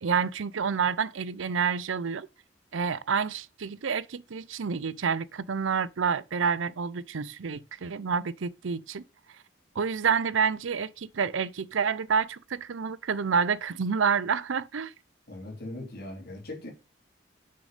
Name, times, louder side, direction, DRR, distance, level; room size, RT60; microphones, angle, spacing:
voice 1, 0.0-2.3 2.7-9.0 9.8-14.9, right 6 dB, 75° right, 0.6 m, -28 dB
voice 2, 15.3-16.7, left 1 dB, 50° left, 3.4 m, -39 dB
6.8 x 6.4 x 5.1 m
head